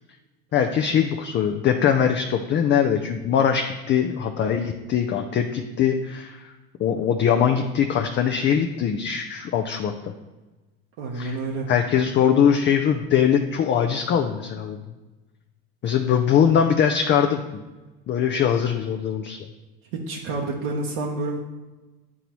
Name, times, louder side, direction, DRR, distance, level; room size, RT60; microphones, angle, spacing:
voice 1, 0.5-6.5 6.8-10.1 11.1-11.4 11.7-14.8 15.8-17.4 18.1-19.4, left 8 dB, 35° left, 5 dB, 0.5 m, -22 dB
voice 2, 11.0-11.7 15.8-15.9 19.9-21.4, right 3 dB, 65° right, -1 dB, 1.0 m, -29 dB
9.8 x 3.9 x 3.0 m, 1.1 s
hypercardioid pair, 80°, 31 cm